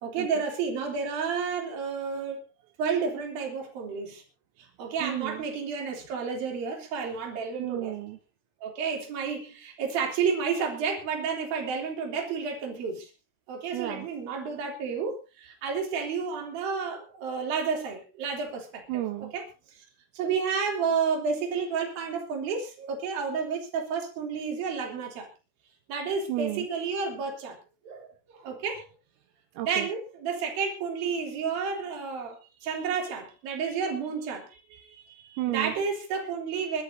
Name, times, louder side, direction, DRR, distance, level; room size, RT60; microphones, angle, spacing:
voice 1, 0.0-2.4 2.8-4.2 4.8-8.0 8.6-13.1 13.5-19.0 19.3-19.5 20.1-25.3 25.9-27.6 27.8-28.8 29.6-34.5 35.5-36.8, right 5 dB, 50° right, 1 dB, 4.6 m, -31 dB
voice 2, 5.0-5.4 7.6-8.2 13.7-14.1 18.9-19.3 26.3-26.7 29.6-29.9 34.7-35.7, right 15 dB, 80° right, 5 dB, 3.7 m, -33 dB
26.0 x 12.5 x 2.8 m, 0.29 s
omnidirectional pair, 6.0 m